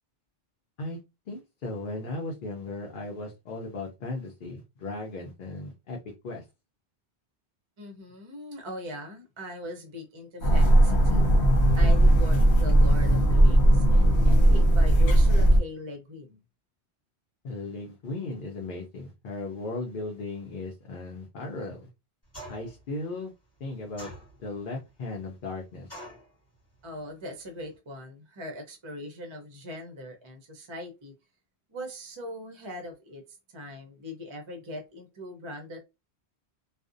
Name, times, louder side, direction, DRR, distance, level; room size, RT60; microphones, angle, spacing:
voice 1, 1.3-6.0 6.2-6.4 17.4-21.9 22.5-23.3 23.6-24.1 24.4-25.9, left 2 dB, 60° left, 0.7 m, -36 dB
voice 2, 7.8-11.3 11.7-16.4 26.8-31.1 31.7-33.2 33.5-35.8, left 1 dB, 35° right, 0.5 m, -40 dB
sound 1, 10.4-15.6, right 1 dB, 75° left, 1.0 m, -18 dB
sound 2, 22.3-22.8 24.0-24.6 25.9-26.3, right 1 dB, 15° left, 1.1 m, -43 dB
2.5 x 2.0 x 2.5 m
omnidirectional pair, 1.1 m